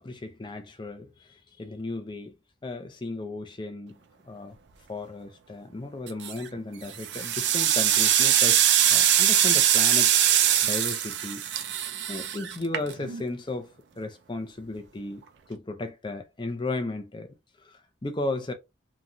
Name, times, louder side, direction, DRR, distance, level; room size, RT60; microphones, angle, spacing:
voice 1, 0.0-2.3 2.6-4.0 4.2-4.6 4.9-8.6 8.9-11.4 12.1-15.2 15.5-18.5, left 2 dB, 25° left, 0.6 m, -35 dB
sound 1, 6.1-6.5 6.9-13.2, right 10 dB, 60° right, 0.4 m, -22 dB
3.1 x 2.3 x 2.6 m
head